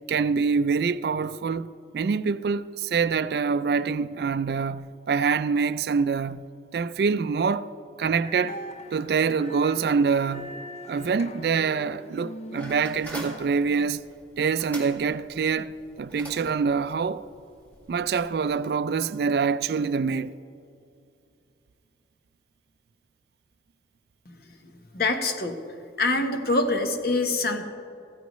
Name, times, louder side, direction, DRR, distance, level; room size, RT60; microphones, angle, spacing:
voice 1, 0.1-7.7 8.0-8.6 8.9-10.6 10.9-14.0 14.4-17.3 17.9-20.3, right 5 dB, 60° right, 0.3 m, -25 dB
sound 1, 8.2-13.9, left 1 dB, 35° left, 0.6 m, -42 dB
sound 2, 12.6-18.5, right 1 dB, 10° left, 1.8 m, -44 dB
voice 2, 24.9-25.6 26.0-27.6, left 2 dB, 55° left, 1.0 m, -25 dB
15.0 x 14.5 x 3.1 m
head